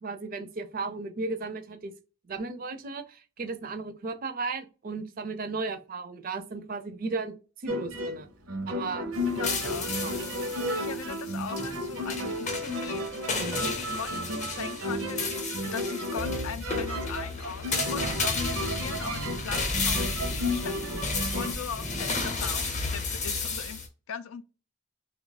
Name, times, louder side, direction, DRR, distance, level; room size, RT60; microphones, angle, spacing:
voice 1, 0.0-1.9 2.3-8.3 8.7-9.1 10.0-10.2, right 3 dB, 40° right, 0.4 m, -35 dB
sound 1, 7.7-21.5, equal, 85° right, 0.7 m, -33 dB
voice 2, 8.9-9.9 10.7-14.1 14.5-24.4, left 7 dB, 85° left, 0.4 m, -40 dB
sound 2, 9.1-23.9, left 3 dB, 35° left, 0.7 m, -33 dB
2.7 x 2.3 x 4.0 m
head